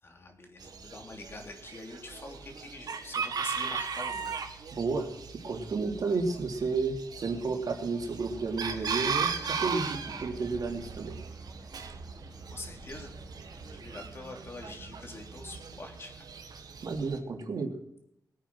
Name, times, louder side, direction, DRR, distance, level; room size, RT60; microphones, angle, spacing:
voice 1, 0.0-4.3 12.3-13.1 13.6-16.3, left 2 dB, 35° left, 3 dB, 3.1 m, -45 dB
Chicken rooster, 0.6-17.2, right 6 dB, 85° right, 1.9 m, -38 dB
voice 2, 4.7-5.1 5.4-11.1 16.8-17.7, right 4 dB, 70° right, 2 dB, 3.3 m, -32 dB
sound 1, 8.3-13.8, right 1 dB, 5° right, 3.2 m, -53 dB
21.5 x 9.0 x 6.2 m, 0.75 s
wide cardioid pair, 165°, 7 cm